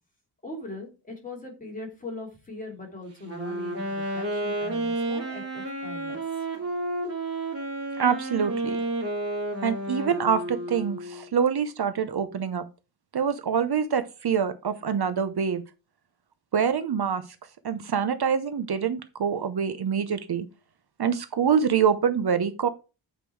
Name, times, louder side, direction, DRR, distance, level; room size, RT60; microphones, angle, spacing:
voice 1, 0.4-6.2, left 2 dB, 20° left, -1 dB, 3.1 m, -40 dB
Wind instrument woodwind instrument, 3.2-11.3, right 2 dB, 35° right, 2.7 m, -31 dB
voice 2, 8.0-8.8 9.6-12.7 13.1-15.6 16.5-17.2 17.6-20.5 21.0-22.7, right 7 dB, 60° right, 11 dB, 0.8 m, -25 dB
8.1 x 5.2 x 4.6 m, 0.31 s
wide cardioid pair, 115°, 43 cm